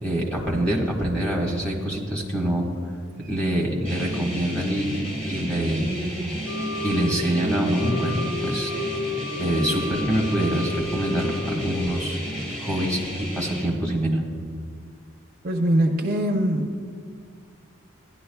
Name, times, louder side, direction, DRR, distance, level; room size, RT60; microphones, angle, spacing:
voice 1, 0.0-2.7 3.3-5.0 5.3-6.5 6.8-8.7 9.4-12.2 12.6-14.2, right 1 dB, 5° left, -4 dB, 1.3 m, -25 dB
sound 1, 3.8-13.6, equal, 30° left, 2.9 m, -33 dB
Wind instrument woodwind instrument, 6.4-12.1, left 3 dB, 65° left, 1.2 m, -32 dB
voice 2, 15.4-16.9, right 1 dB, 45° right, 3 dB, 0.6 m, -23 dB
16.0 x 11.0 x 2.3 m, 2.1 s
head